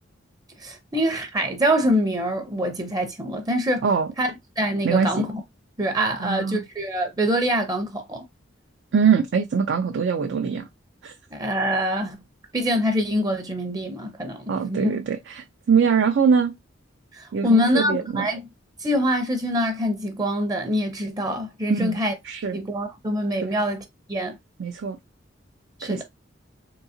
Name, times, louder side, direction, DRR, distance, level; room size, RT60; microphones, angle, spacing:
voice 1, 0.6-3.8 4.2-5.4 5.8-8.2 11.3-12.2 12.5-15.0 17.1-18.5 18.8-22.1 22.5-23.8 24.1-24.4 25.8-26.0, equal, 20° right, 0.6 m, -25 dB
voice 2, 6.2-6.6 8.9-10.7 11.0-11.1 14.5-16.5 17.3-18.3 21.7-22.0 22.2-22.6 23.4-23.6 24.6-25.0 25.8-26.0, right 6 dB, 60° right, 0.4 m, -22 dB
3.8 x 2.8 x 2.7 m
head